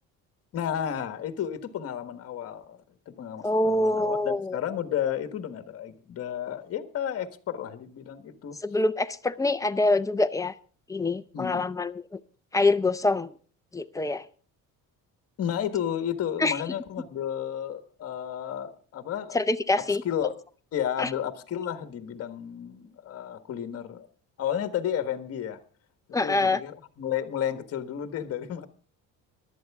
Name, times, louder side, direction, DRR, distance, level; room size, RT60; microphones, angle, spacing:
voice 1, 0.5-8.6 11.3-11.7 15.4-19.4 19.9-20.3 20.7-24.1 24.4-25.6 26.2-28.7, left 9 dB, 45° left, 10 dB, 1.5 m, -32 dB
voice 2, 3.4-4.6 8.6-10.5 10.9-12.2 12.5-13.3 13.7-14.2 16.4-16.6 19.3-20.0 21.0-21.1 26.1-26.6, left 2 dB, 10° left, 10 dB, 0.5 m, -25 dB
18.5 x 12.0 x 3.6 m, 0.40 s
cardioid pair, 145°, 34 cm